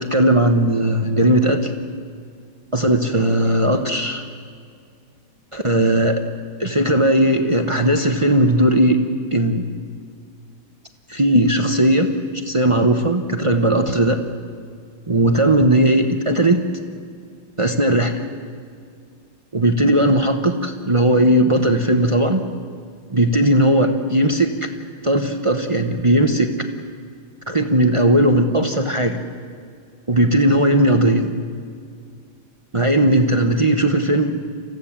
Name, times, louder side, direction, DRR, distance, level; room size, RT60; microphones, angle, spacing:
voice 1, 0.0-1.7 2.7-4.2 5.5-6.2 6.6-9.0 9.3-9.7 11.1-12.1 12.5-14.2 15.1-16.6 17.6-18.2 19.5-22.4 23.1-24.5 25.0-26.5 27.5-29.2 30.1-31.3 32.7-34.4, right 1 dB, 25° right, 5 dB, 0.6 m, -17 dB
28.5 x 15.5 x 7.4 m, 2.2 s
omnidirectional pair, 2.2 m